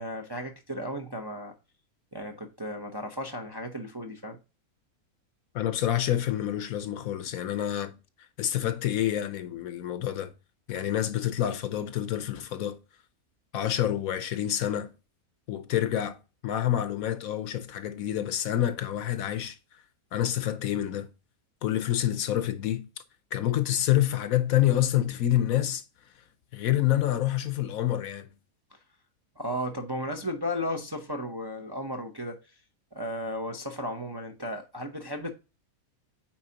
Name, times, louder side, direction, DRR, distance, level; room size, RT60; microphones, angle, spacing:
voice 1, 0.0-1.5 2.1-4.4 29.4-32.4 32.9-35.3, equal, 25° right, 0.6 m, -34 dB
voice 2, 5.5-8.0 8.4-10.3 10.7-12.8 13.5-14.9 15.5-19.6 20.1-21.1 21.6-22.9 23.3-25.8 26.5-28.3, left 12 dB, 75° left, 1.1 m, -27 dB
8.7 x 4.2 x 2.8 m
omnidirectional pair, 1.5 m